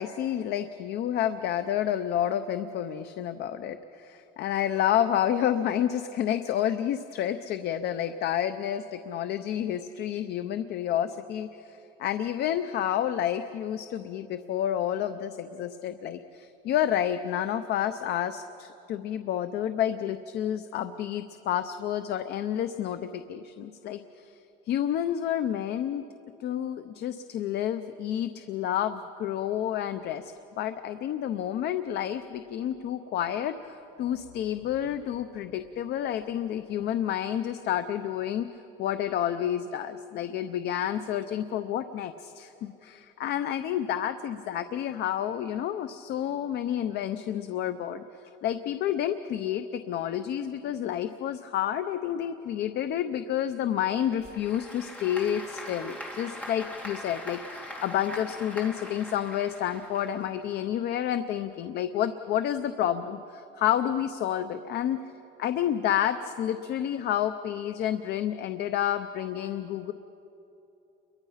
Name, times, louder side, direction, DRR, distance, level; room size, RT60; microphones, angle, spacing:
voice 1, 0.0-24.4 24.7-26.1 26.4-38.5 38.8-48.0 48.4-65.0 65.4-69.9, left 10 dB, 60° left, 9 dB, 0.7 m, -30 dB
Applause / Crowd, 54.0-60.6, left 1 dB, 5° left, 2.5 m, -42 dB
29.5 x 23.0 x 5.7 m, 3.0 s
cardioid pair, 180°, 19 cm